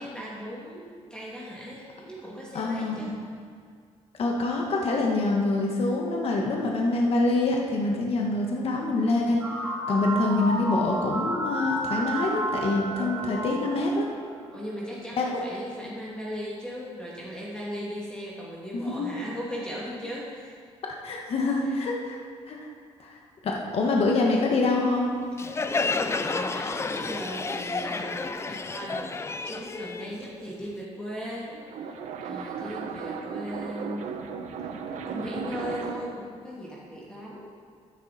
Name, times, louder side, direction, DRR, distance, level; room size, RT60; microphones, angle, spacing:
voice 1, 0.0-3.2 14.5-20.5 21.6-21.7 25.5-29.1 29.4-31.5 32.2-34.1 35.1-37.5, equal, 5° left, -6 dB, 2.6 m, -37 dB
voice 2, 2.5-3.0 4.2-9.4 9.9-14.1 15.2-15.4 18.7-19.1 20.8-22.2 22.5-22.6 23.0-23.1 23.4-25.1, left 2 dB, 55° left, -1 dB, 1.5 m, -25 dB
sound 1, 9.4-14.5, right 1 dB, 15° right, 2.5 m, -31 dB
Crowd, 25.4-30.8, left 3 dB, 20° left, 0.5 m, -31 dB
sound 2, 31.3-36.2, right 5 dB, 85° right, 0.9 m, -36 dB
12.0 x 10.5 x 4.3 m, 2.1 s
cardioid pair, 110°, 12 cm